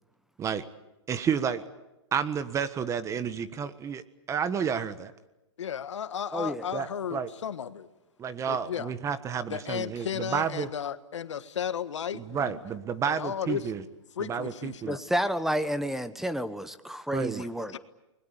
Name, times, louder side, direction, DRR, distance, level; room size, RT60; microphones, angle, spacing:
voice 1, 1.1-1.6 2.1-4.0 4.3-5.1 6.7-7.3 8.2-10.7 12.1-13.8 14.2-15.0 17.1-17.4, right 7 dB, 20° right, 1.5 m, -30 dB
voice 2, 5.6-7.9 8.5-8.9 9.5-12.6 13.0-13.6 14.2-15.0 17.7-17.8, left 8 dB, 80° left, 1.5 m, -34 dB
voice 3, 6.3-6.7 14.8-17.7, equal, ahead, 1.2 m, -30 dB
29.5 x 21.0 x 8.6 m
hypercardioid pair, 130°, 15 cm